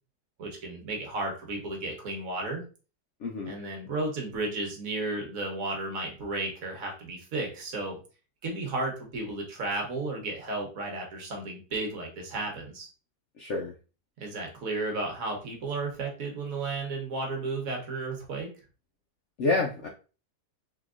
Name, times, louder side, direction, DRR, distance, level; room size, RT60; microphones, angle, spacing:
voice 1, 0.4-2.6 3.4-8.0 8.4-12.9 14.2-18.5, right 2 dB, 60° right, 1 dB, 1.3 m, -33 dB
voice 2, 3.2-3.6 13.4-13.7 19.4-19.9, left 3 dB, 70° left, 1 dB, 0.7 m, -28 dB
3.7 x 2.8 x 2.4 m, 0.35 s
omnidirectional pair, 1.7 m